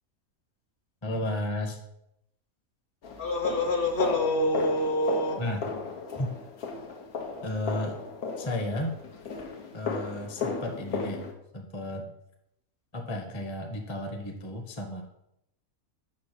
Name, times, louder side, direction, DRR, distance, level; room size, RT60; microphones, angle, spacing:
voice 1, 1.0-1.8 5.4-5.7 6.2-6.3 7.4-8.0 8.4-8.9 9.7-11.2 11.5-12.1 12.9-15.0, left 1 dB, 25° left, 4 dB, 0.7 m, -33 dB
sound 1, 3.0-11.3, left 4 dB, 85° left, 1.6 m, -35 dB
voice 2, 3.2-5.4, left 1 dB, 45° left, 4 dB, 1.0 m, -26 dB
6.5 x 5.6 x 5.7 m, 0.81 s
omnidirectional pair, 1.5 m